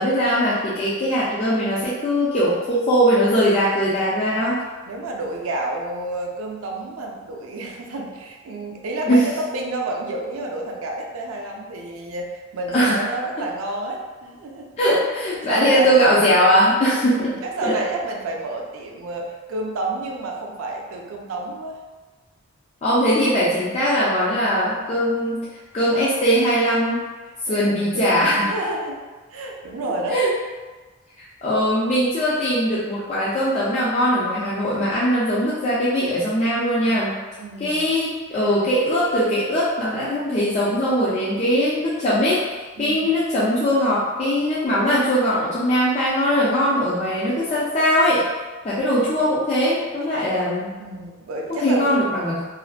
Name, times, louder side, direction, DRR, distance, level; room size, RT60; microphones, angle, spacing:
voice 1, 0.0-4.6 9.1-9.2 12.7-13.0 14.8-17.3 17.6-17.7 22.8-25.4 25.7-27.0 27.5-28.5 30.1-30.3 31.2-37.2 37.6-42.4 42.8-48.3 48.6-50.7 51.5-52.4, equal, 30° left, -9 dB, 0.3 m, -20 dB
voice 2, 4.9-14.7 15.5-16.0 17.0-21.8 27.4-29.0 29.3-30.2 37.4-37.8 42.8-43.1 50.8-52.0, right 2 dB, 80° right, 0 dB, 0.4 m, -30 dB
2.5 x 2.2 x 2.4 m, 1.3 s
head